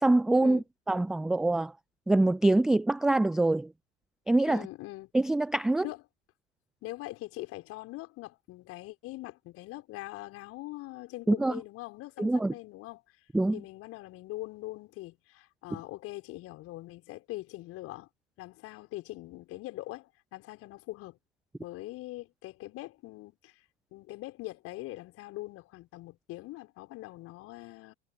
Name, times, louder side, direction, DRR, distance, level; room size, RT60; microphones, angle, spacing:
voice 1, 0.0-0.6 0.9-1.7 2.1-3.7 4.3-4.6 5.1-5.8 11.3-11.6 12.2-12.5 13.3-13.6, right 2 dB, ahead, 0.3 m, -24 dB
voice 2, 4.5-5.1 5.8-6.0 6.8-13.0 13.5-18.1 18.4-21.2 21.6-23.5 23.9-27.9, left 18 dB, 40° left, 5.9 m, -42 dB
figure-of-eight pair, 90°, 36 cm